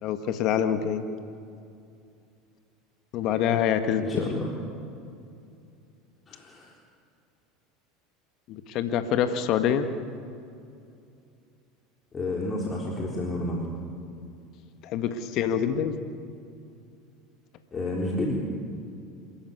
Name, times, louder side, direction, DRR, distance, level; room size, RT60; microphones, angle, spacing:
voice 1, 0.0-1.0 3.1-4.1 8.5-9.9 14.8-16.0, left 9 dB, 55° left, 8 dB, 1.7 m, -26 dB
voice 2, 4.0-4.5 6.3-6.7 12.1-13.7 17.7-18.4, left 2 dB, 30° left, -2 dB, 4.0 m, -30 dB
26.5 x 14.5 x 9.6 m, 2.5 s
hypercardioid pair, 85°, 0 cm